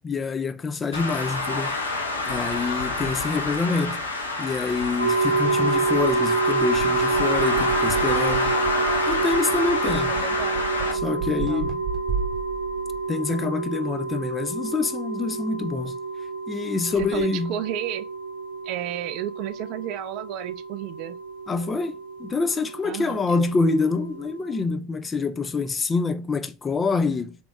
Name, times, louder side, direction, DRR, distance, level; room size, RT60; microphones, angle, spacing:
voice 1, 0.0-1.7 2.3-4.0 4.4-8.5 9.1-10.1 10.9-11.8 13.1-16.0 16.5-17.6 21.5-27.4, left 4 dB, 25° left, 0.4 m, -26 dB
Traffic noise roadway noise, 0.9-10.9, left 2 dB, 85° left, 0.6 m, -27 dB
sound 1, 5.0-24.6, right 3 dB, 80° right, 0.8 m, -28 dB
sound 2, 6.7-13.1 16.9-17.2, right 5 dB, 20° right, 1.0 m, -35 dB
voice 2, 10.1-11.1 11.4-11.7 17.0-18.1 18.6-21.2 22.8-23.4, right 12 dB, 50° right, 0.3 m, -32 dB
3.5 x 2.9 x 2.3 m
figure-of-eight pair, 75°, 0 cm